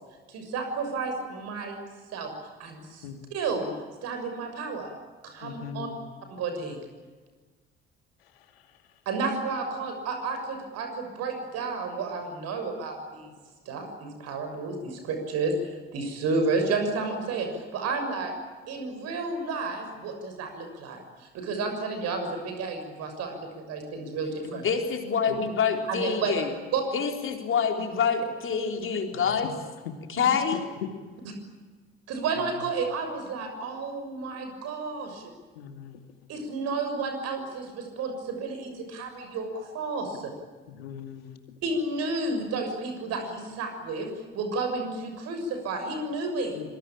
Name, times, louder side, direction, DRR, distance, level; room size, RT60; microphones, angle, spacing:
voice 1, 0.3-1.8 2.1-2.3 2.6-3.7 4.0-4.9 5.2-5.9 6.3-6.8 9.0-13.3 13.6-18.3 18.7-24.6 25.9-26.3 26.7-26.8 30.2-30.3 32.1-35.3 36.3-40.3 41.6-46.6, right 3 dB, 55° right, 5 dB, 6.7 m, -31 dB
voice 2, 5.4-6.0 25.3-25.4 35.6-36.0 40.7-41.2 46.5-46.7, left 8 dB, 75° left, 7 dB, 2.4 m, -40 dB
voice 3, 24.4-26.5 26.9-29.5 30.1-30.7, left 6 dB, 40° left, 4 dB, 4.2 m, -26 dB
26.0 x 24.0 x 8.9 m, 1.4 s
figure-of-eight pair, 50°, 30 cm